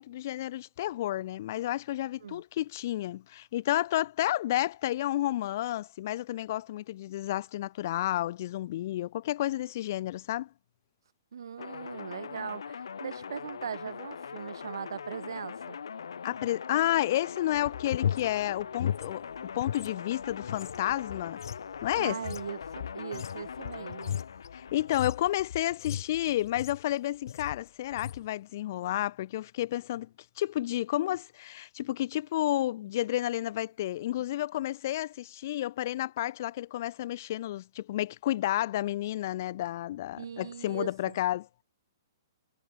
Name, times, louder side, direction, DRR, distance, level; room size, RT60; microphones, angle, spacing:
voice 1, 0.0-10.5 16.2-21.4 21.8-22.2 24.5-30.1 30.4-41.5, left 14 dB, 45° left, 0.4 m, -31 dB
voice 2, 11.3-15.8 22.0-24.2 40.2-41.2, right 7 dB, 75° right, 3.4 m, -40 dB
sound 1, 11.6-25.3, left 6 dB, 90° left, 3.2 m, -42 dB
sound 2, 17.5-19.9 20.2-26.9 27.3-27.6 27.9-28.3, left 9 dB, 65° left, 1.3 m, -36 dB
hypercardioid pair, 160°, 2 cm